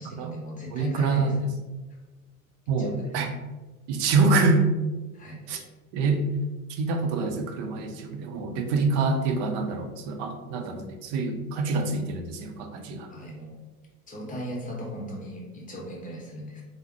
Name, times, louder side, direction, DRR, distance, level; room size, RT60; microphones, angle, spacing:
voice 1, 0.0-1.3 2.8-3.2 5.1-5.5 13.1-13.6 14.1-16.6, equal, 20° left, -2 dB, 0.8 m, -37 dB
voice 2, 0.7-1.3 2.7-3.3 3.9-4.7 5.5-5.6 5.9-6.2 6.7-13.1, right 3 dB, 50° right, 6 dB, 0.6 m, -26 dB
3.4 x 2.1 x 2.9 m, 1.2 s
hypercardioid pair, 75°, 44 cm